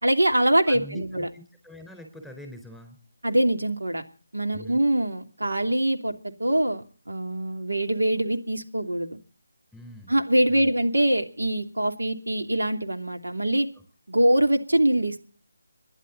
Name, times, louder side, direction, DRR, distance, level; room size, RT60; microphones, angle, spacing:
voice 1, 0.0-1.3 3.2-4.0 4.3-6.1 6.4-9.2 10.1-13.7 14.1-15.2, right 1 dB, 90° right, 5 dB, 2.9 m, -23 dB
voice 2, 0.7-3.0 4.5-4.8 9.7-10.2 10.5-10.7, left 1 dB, 5° right, 5 dB, 4.3 m, -44 dB
28.0 x 11.0 x 4.1 m, 0.38 s
figure-of-eight pair, 160°, 0 cm